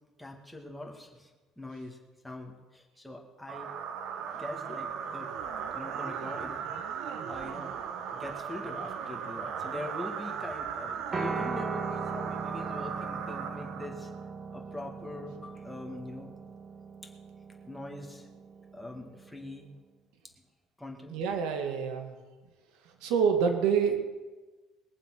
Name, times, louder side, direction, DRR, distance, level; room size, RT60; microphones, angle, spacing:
voice 1, 0.2-1.3 1.6-2.0 2.2-3.7 4.3-5.3 5.7-6.8 7.3-7.7 8.1-14.1 14.5-16.3 17.0-17.1 17.6-18.3 18.7-19.7 20.8-21.2, left 2 dB, 5° left, 0 dB, 2.1 m, -43 dB
sound 1, 3.5-14.2, right 7 dB, 60° right, 1.1 m, -37 dB
Piano, 11.1-19.4, right 4 dB, 25° right, 1.6 m, -39 dB
voice 2, 21.1-22.1 22.8-24.0, right 6 dB, 85° right, 5 dB, 1.9 m, -27 dB
21.0 x 7.4 x 6.1 m, 1.2 s
cardioid pair, 140°, 0 cm